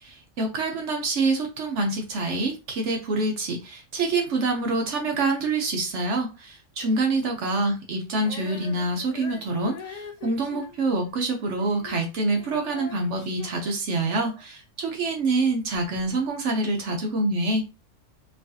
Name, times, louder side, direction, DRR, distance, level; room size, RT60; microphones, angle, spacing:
voice 1, 0.0-17.6, right 2 dB, 70° right, 1.0 m, -26 dB
Female singing, 8.2-12.0 12.3-14.4, left 4 dB, 60° left, 0.4 m, -43 dB
4.6 x 2.4 x 2.7 m
omnidirectional pair, 1.3 m